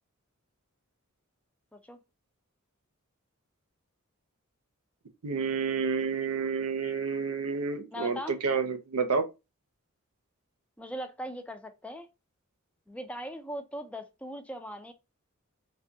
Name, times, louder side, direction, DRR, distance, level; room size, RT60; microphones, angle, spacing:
voice 1, 5.2-9.3, right 5 dB, 85° right, 0.6 m, -29 dB
voice 2, 7.9-8.3 10.8-12.1 12.9-14.9, equal, 5° left, 0.4 m, -39 dB
3.3 x 2.2 x 2.6 m
head